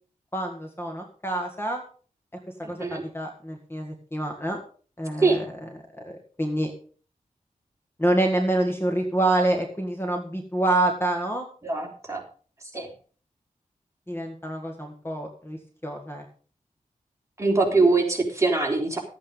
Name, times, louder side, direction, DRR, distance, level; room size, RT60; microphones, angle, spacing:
voice 1, 0.3-1.8 2.6-4.6 5.0-5.5 6.0-6.7 8.0-11.5 14.1-16.3, right 1 dB, 15° left, 3 dB, 1.8 m, -27 dB
voice 2, 2.6-3.0 5.2-5.4 11.6-12.2 12.7-12.9 17.4-19.0, right 3 dB, 20° right, 0 dB, 3.5 m, -23 dB
13.5 x 8.6 x 5.3 m, 0.41 s
wide cardioid pair, 115°, 14 cm